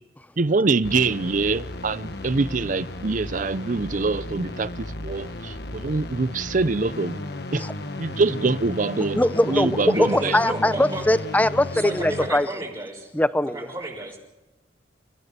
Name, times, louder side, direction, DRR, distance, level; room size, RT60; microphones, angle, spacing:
voice 1, 0.4-7.2 7.5-7.6 8.0-10.4, right 3 dB, 45° right, 0.6 m, -24 dB
sound 1, 0.8-12.3, left 2 dB, 60° left, 1.4 m, -35 dB
voice 2, 9.1-12.5 13.1-13.7, left 1 dB, 10° left, 0.7 m, -21 dB
voice 3, 9.9-11.0 11.8-13.1 13.5-14.2, right 1 dB, 25° right, 4.2 m, -31 dB
30.0 x 15.5 x 6.8 m
head